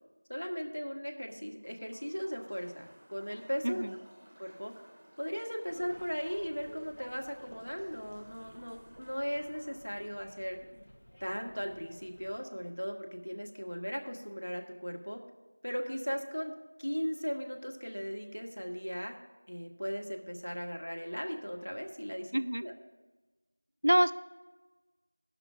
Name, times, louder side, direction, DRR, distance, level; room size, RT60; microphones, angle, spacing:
voice 1, 0.3-3.8 4.4-4.7 5.2-10.6 11.2-15.2 15.6-16.5 16.8-19.2 19.5-22.3 22.6-22.7, equal, 75° left, 2 dB, 1.7 m, -37 dB
sound 1, 1.6-10.2, right 1 dB, 10° right, 0.7 m, -58 dB
voice 2, 3.6-3.9 22.3-22.6 23.8-24.1, right 1 dB, 40° right, 12 dB, 0.3 m, -26 dB
sound 2, 5.7-12.4, equal, 50° left, 0.9 m, -55 dB
17.5 x 5.9 x 3.5 m, 1.2 s
figure-of-eight pair, 180°, 0 cm